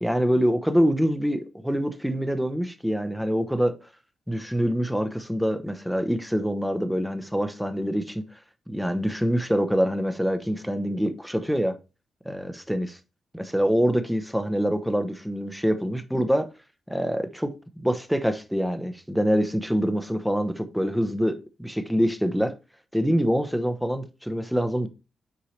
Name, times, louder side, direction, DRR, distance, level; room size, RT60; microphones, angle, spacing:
voice 1, 0.0-3.7 4.3-8.2 8.7-11.7 12.2-13.0 13.3-16.5 16.9-22.5 22.9-24.9, equal, ahead, 0.9 m, -25 dB
6.8 x 4.6 x 3.2 m
cardioid pair, 90°, 0 cm